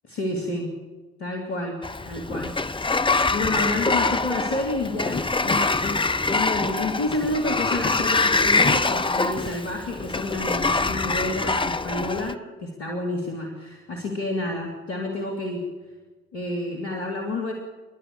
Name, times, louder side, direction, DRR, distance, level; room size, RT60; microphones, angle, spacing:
voice 1, 0.0-0.7 1.2-1.8 2.1-2.5 3.3-6.0 6.3-15.6 16.3-17.5, left 2 dB, 80° left, 2 dB, 2.3 m, -29 dB
Sliding door, 1.8-12.3, left 3 dB, 15° left, 0.9 m, -24 dB
29.5 x 10.5 x 8.3 m, 1.3 s
figure-of-eight pair, 40°, 33 cm